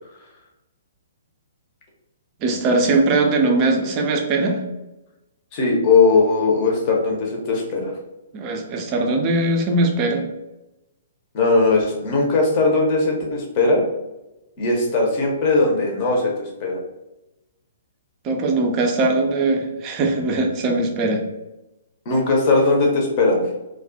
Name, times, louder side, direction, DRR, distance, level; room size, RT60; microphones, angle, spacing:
voice 1, 2.4-4.6 8.3-10.2 18.2-21.2, right 2 dB, 25° right, 3 dB, 0.4 m, -20 dB
voice 2, 5.5-7.9 11.3-13.9 14.6-16.3 16.6-16.8 22.1-23.4, left 3 dB, 35° left, 0 dB, 0.7 m, -19 dB
2.3 x 2.2 x 2.5 m, 0.97 s
figure-of-eight pair, 120°, 0 cm